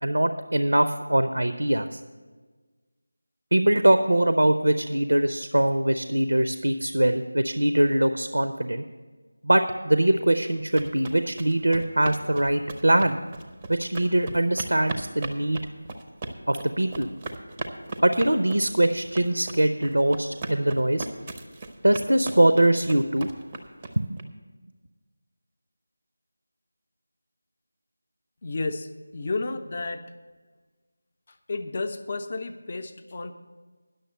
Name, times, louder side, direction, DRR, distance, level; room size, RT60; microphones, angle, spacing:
voice 1, 0.0-2.0 3.5-8.8 9.4-13.2 13.7-15.6 16.5-17.1 18.0-21.1 21.8-23.3 24.0-24.2, right 1 dB, 70° right, 9 dB, 0.6 m, -22 dB
sound 1, 10.4-24.2, right 2 dB, 15° right, 0.6 m, -37 dB
voice 2, 28.4-30.1 31.5-33.3, left 3 dB, 30° left, 8 dB, 0.6 m, -32 dB
10.5 x 6.7 x 7.7 m, 1.4 s
figure-of-eight pair, 165°, 0 cm